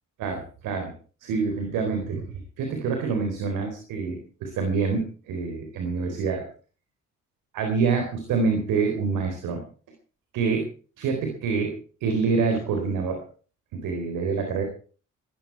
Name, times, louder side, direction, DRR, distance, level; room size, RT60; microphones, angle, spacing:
voice 1, 0.2-0.9 1.2-6.5 7.5-9.6 10.3-10.7 11.0-11.7 12.0-13.2 13.7-14.6, right 5 dB, 80° right, 4 dB, 4.1 m, -26 dB
19.0 x 13.5 x 4.7 m, 0.40 s
supercardioid pair, 55°, 31 cm